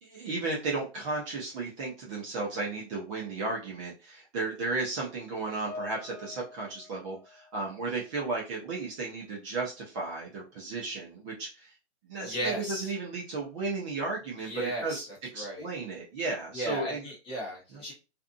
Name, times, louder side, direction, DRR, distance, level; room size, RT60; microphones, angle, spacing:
voice 1, 0.0-11.7 12.0-15.1 15.3-17.0, right 3 dB, 25° right, -4 dB, 0.7 m, -34 dB
Piano, 5.7-8.3 8.6-8.9 9.7-9.8, left 3 dB, 45° left, 1.4 m, -47 dB
voice 2, 12.2-12.9 14.4-15.7 16.5-17.9, right 1 dB, 15° left, -5 dB, 1.0 m, -36 dB
2.6 x 2.4 x 2.5 m, 0.30 s
hypercardioid pair, 150°, 35 cm